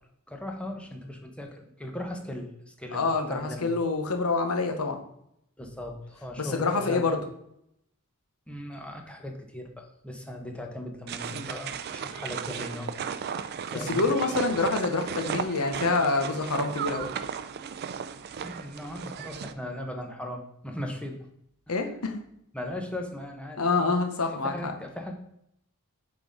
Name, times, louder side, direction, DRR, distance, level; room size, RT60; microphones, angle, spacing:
voice 1, 0.3-3.0 3.3-3.7 5.6-7.2 8.5-13.2 13.7-14.1 18.4-21.3 21.7-21.8 22.5-23.9 24.4-25.1, left 1 dB, 5° left, 3 dB, 0.8 m, -38 dB
voice 2, 2.9-5.0 6.4-7.2 11.3-11.5 13.7-17.1 21.7-22.2 23.6-24.7, left 3 dB, 70° left, 5 dB, 0.9 m, -27 dB
sound 1, 11.1-19.5, right 7 dB, 45° right, 0.4 m, -35 dB
6.1 x 3.8 x 5.1 m, 0.76 s
head